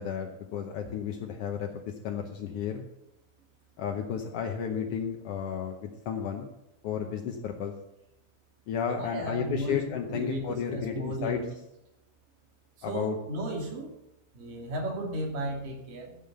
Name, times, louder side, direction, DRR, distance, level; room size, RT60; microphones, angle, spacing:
voice 1, 0.0-2.8 3.8-6.5 6.8-7.7 8.7-11.4 12.8-13.2, left 7 dB, 75° left, 2 dB, 1.4 m, -33 dB
voice 2, 8.9-11.5 12.9-13.9 14.3-16.2, right 1 dB, 85° right, 0 dB, 4.1 m, -34 dB
14.0 x 5.7 x 6.6 m, 0.87 s
omnidirectional pair, 3.7 m